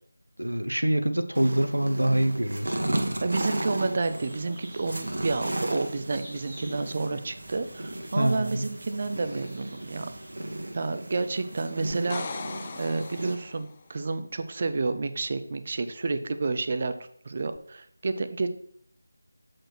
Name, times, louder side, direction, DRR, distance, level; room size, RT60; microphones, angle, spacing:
voice 1, 0.4-3.0 8.1-8.7, right 1 dB, 75° right, 9 dB, 0.8 m, -25 dB
sound 1, 1.3-13.3, right 1 dB, 55° right, 1.1 m, -35 dB
voice 2, 3.2-10.1 10.7-12.2 12.8-16.9 17.2-18.5, right 3 dB, 35° right, 10 dB, 0.5 m, -30 dB
sound 2, 4.0-10.7, right 1 dB, 15° right, 1.6 m, -50 dB
sound 3, 11.9-13.8 17.5-17.6, left 4 dB, 25° left, 0.4 m, -38 dB
7.6 x 4.5 x 4.4 m, 0.63 s
figure-of-eight pair, 165°, 0 cm